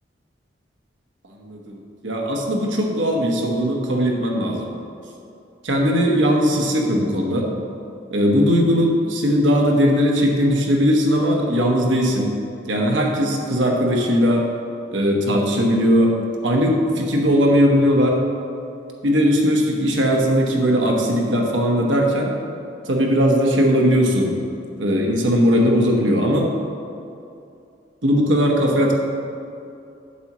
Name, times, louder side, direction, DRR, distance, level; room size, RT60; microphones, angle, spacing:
voice 1, 1.4-4.7 5.6-7.5 8.1-12.3 12.7-14.4 14.9-16.2 16.4-18.2 19.0-22.3 22.8-24.3 24.8-26.5 28.0-28.9, equal, 80° right, 0 dB, 1.1 m, -19 dB
8.4 x 7.1 x 3.0 m, 2.6 s
head